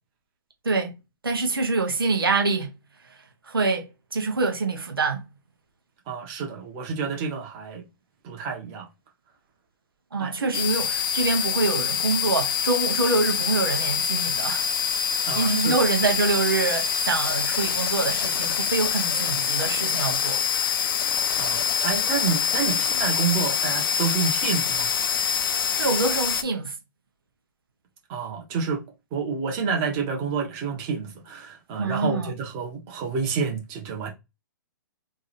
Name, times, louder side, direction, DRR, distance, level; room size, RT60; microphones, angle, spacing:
voice 1, 0.6-1.0 1.2-2.7 3.5-5.2 10.1-14.7 15.3-20.4 25.5-26.7 31.8-32.3, right 3 dB, 90° right, 1.0 m, -25 dB
voice 2, 6.1-7.8 8.2-8.9 10.2-10.3 15.2-15.7 21.4-24.9 28.1-28.8 29.1-34.1, right 5 dB, 35° right, 1.5 m, -29 dB
sound 1, 10.5-26.4, left 7 dB, 75° left, 0.5 m, -25 dB
3.6 x 2.8 x 3.3 m
hypercardioid pair, 130°, 12 cm